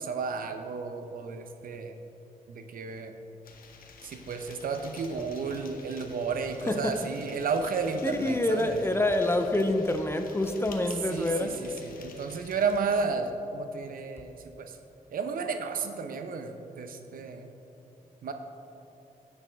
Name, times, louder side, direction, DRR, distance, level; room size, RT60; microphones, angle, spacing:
voice 1, 0.0-1.9 2.5-3.1 4.0-8.8 11.1-14.8 15.1-17.5 18.2-18.3, right 5 dB, 75° right, 6 dB, 0.7 m, -32 dB
sound 1, 3.4-13.0, left 4 dB, 75° left, 0.9 m, -51 dB
voice 2, 6.7-7.1 8.0-11.6, left 1 dB, 15° left, 6 dB, 0.6 m, -27 dB
10.0 x 7.0 x 3.5 m, 3.0 s
cardioid pair, 90°, 15 cm